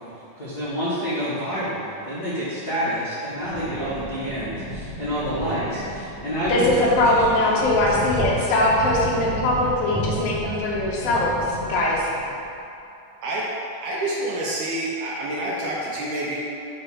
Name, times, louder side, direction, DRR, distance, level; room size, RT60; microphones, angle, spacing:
voice 1, 0.0-7.5, equal, 65° left, -13 dB, 0.9 m, -28 dB
sound 1, 3.3-12.5, equal, 50° right, 1.5 m, -32 dB
voice 2, 6.5-12.1, left 1 dB, 80° left, -4 dB, 2.8 m, -21 dB
voice 3, 13.8-16.4, right 1 dB, 75° right, -5 dB, 2.1 m, -27 dB
6.8 x 3.2 x 5.6 m, 2.8 s
omnidirectional pair, 4.1 m